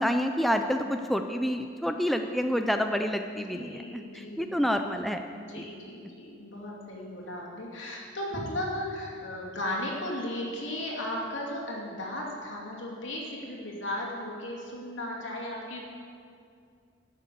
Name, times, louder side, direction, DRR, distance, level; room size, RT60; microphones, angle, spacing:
voice 1, 0.0-5.3 5.5-5.7, equal, ahead, 5 dB, 0.4 m, -28 dB
voice 2, 3.5-4.5 5.4-15.8, left 1 dB, 75° left, -3 dB, 2.6 m, -36 dB
12.0 x 6.7 x 8.4 m, 2.3 s
head